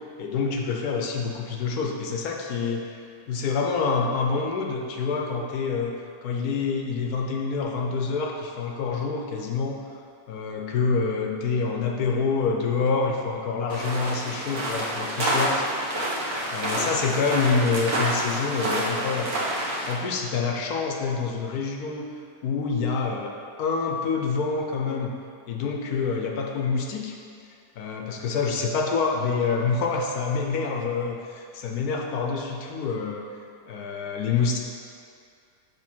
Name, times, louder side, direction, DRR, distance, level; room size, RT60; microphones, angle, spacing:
voice 1, 0.2-2.9 3.3-5.9 6.2-9.8 10.3-15.6 16.5-19.3 19.6-22.1 22.4-23.3 23.6-25.1 25.5-27.1 27.8-33.3 33.7-34.6, left 5 dB, 85° left, 1 dB, 1.3 m, -27 dB
sound 1, 13.7-19.9, right 1 dB, 65° right, 1.5 m, -28 dB
6.2 x 3.6 x 6.1 m, 2.4 s
omnidirectional pair, 1.6 m